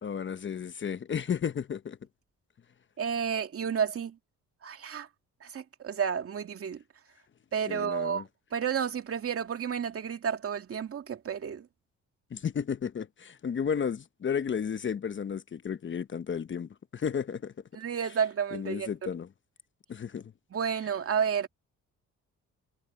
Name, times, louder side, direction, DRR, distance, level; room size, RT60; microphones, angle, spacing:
voice 1, 0.0-2.0 7.7-8.2 12.3-17.5 18.5-19.3 19.9-20.3, left 7 dB, 40° left, 1.0 m, -33 dB
voice 2, 3.0-4.2 4.6-5.1 5.4-6.8 7.5-8.2 8.5-11.7 17.7-19.1 20.5-21.5, right 7 dB, 50° right, 2.4 m, -31 dB
cardioid pair, 90°, 30 cm